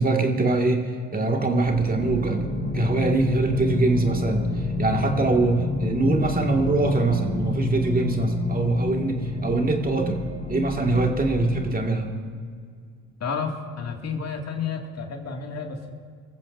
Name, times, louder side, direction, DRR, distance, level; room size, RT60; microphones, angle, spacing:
voice 1, 0.0-2.4 2.7-4.5 4.8-10.2 10.5-12.1, right 3 dB, 20° right, 2 dB, 2.0 m, -23 dB
sound 1, 1.6-11.8, left 2 dB, 20° left, 3.7 m, -28 dB
voice 2, 13.2-15.9, left 5 dB, 40° left, 2 dB, 2.2 m, -31 dB
24.5 x 15.0 x 2.6 m, 2.1 s
hypercardioid pair, 60°, 39 cm